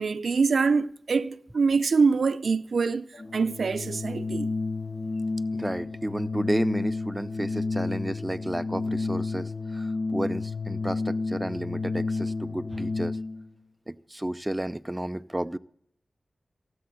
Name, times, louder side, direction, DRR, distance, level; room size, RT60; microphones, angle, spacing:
voice 1, 0.0-3.0 3.3-4.5, right 4 dB, 80° right, 0.6 m, -24 dB
Organ, 3.1-13.5, left 3 dB, 65° left, 1.2 m, -31 dB
voice 2, 5.5-13.2 13.9-15.6, right 1 dB, 15° right, 0.5 m, -32 dB
17.5 x 7.8 x 7.3 m
cardioid pair, 50°, 0 cm